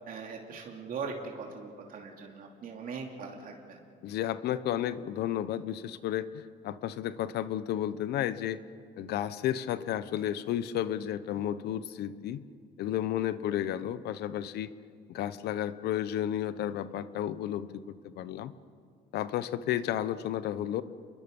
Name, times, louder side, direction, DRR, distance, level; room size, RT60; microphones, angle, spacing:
voice 1, 0.1-3.8, right 5 dB, 55° right, 1 dB, 2.9 m, -40 dB
voice 2, 4.0-8.6 9.0-12.4 12.8-14.7 15.1-18.5 19.1-20.8, left 11 dB, 75° left, 14 dB, 0.9 m, -32 dB
28.5 x 22.0 x 5.4 m, 2.4 s
cardioid pair, 110°, 17 cm